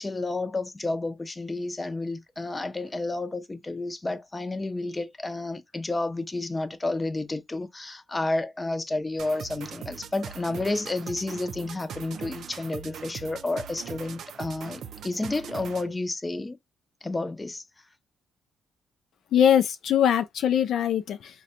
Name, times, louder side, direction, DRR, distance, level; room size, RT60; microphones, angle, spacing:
voice 1, 0.0-16.6 17.0-17.6, left 2 dB, 20° left, 0.6 m, -31 dB
sound 1, 9.2-16.0, right 8 dB, 70° right, 0.4 m, -41 dB
voice 2, 19.3-21.4, left 9 dB, 70° left, 0.4 m, -22 dB
3.9 x 2.2 x 2.8 m
cardioid pair, 90°, 0 cm